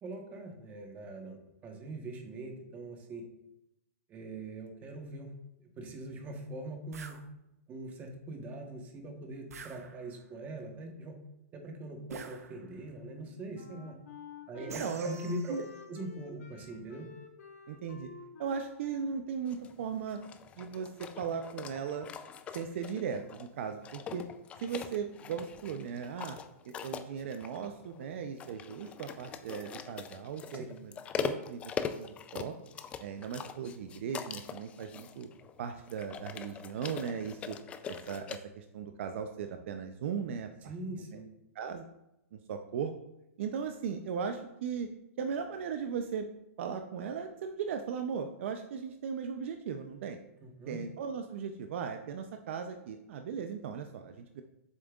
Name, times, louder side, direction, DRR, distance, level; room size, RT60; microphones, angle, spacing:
voice 1, 0.0-3.2 4.1-5.3 5.6-7.2 7.7-11.2 11.5-14.0 14.5-15.6 15.9-17.1 30.5-30.6 40.6-41.3 50.4-50.8, right 2 dB, 20° right, 3 dB, 1.1 m, -42 dB
sound 1, 6.9-7.2 9.5-10.3 12.1-12.9 14.7-15.8, right 5 dB, 85° right, 0.8 m, -46 dB
Wind instrument woodwind instrument, 13.1-20.4, left 4 dB, 80° left, 1.5 m, -51 dB
voice 2, 14.6-15.1 15.5-15.6 17.7-18.1 18.4-20.2 20.6-22.1 22.5-24.3 24.6-26.4 26.7-31.7 32.0-32.5 33.0-35.3 35.6-37.6 37.9-40.5 40.9-41.2 41.6-41.8 42.3-42.9 43.4-44.9 45.2-46.3 46.6-50.2 50.7-54.4, right 7 dB, 55° right, 6 dB, 0.5 m, -37 dB
sound 2, 19.5-38.4, left 7 dB, 15° left, 0.3 m, -42 dB
7.4 x 6.3 x 2.4 m, 0.88 s
hypercardioid pair, 150°, 8 cm